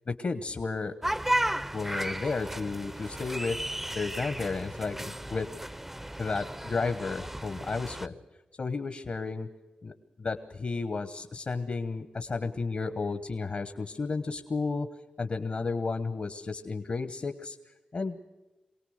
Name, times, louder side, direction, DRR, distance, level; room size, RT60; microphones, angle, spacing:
voice 1, 0.1-0.9 1.7-3.6 3.9-5.5 6.2-8.1 8.6-9.5 9.8-9.9 10.2-14.9 15.2-17.6 17.9-18.3, left 4 dB, 60° left, 10 dB, 1.2 m, -32 dB
sound 1, 1.0-8.1, right 1 dB, 10° right, 0.6 m, -34 dB
24.0 x 18.0 x 6.5 m, 1.1 s
cardioid pair, 50°, 3 cm